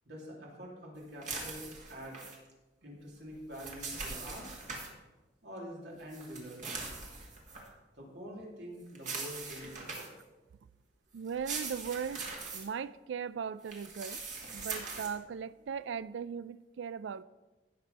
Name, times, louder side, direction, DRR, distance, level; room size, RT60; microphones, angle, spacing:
voice 1, 0.0-2.2 2.8-4.5 5.4-6.7 8.0-10.1, equal, 65° right, 3.2 m, -46 dB
sound 1, 1.2-2.4 3.3-4.9 6.1-7.7 8.9-10.2 11.3-12.6 13.6-15.1, right 4 dB, 45° right, 2.1 m, -41 dB
voice 2, 11.1-14.2 14.5-17.2, right 7 dB, 85° right, 0.4 m, -38 dB
16.0 x 6.1 x 4.1 m
head